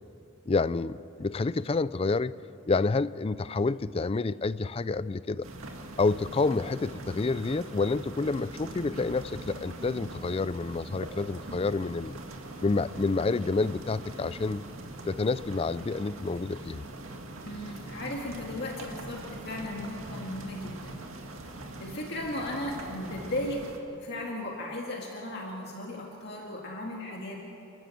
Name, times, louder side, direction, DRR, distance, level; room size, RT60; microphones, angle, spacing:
voice 1, 0.5-2.3 2.7-5.5 6.0-12.2 12.6-14.6 15.1-16.8, left 3 dB, 30° left, 17 dB, 0.4 m, -28 dB
sound 1, 5.4-23.8, right 2 dB, 85° right, 2.0 m, -42 dB
voice 2, 17.5-21.1 21.8-23.6 24.0-27.5, left 1 dB, 55° left, -1 dB, 2.0 m, -36 dB
29.5 x 12.0 x 7.7 m, 2.9 s
head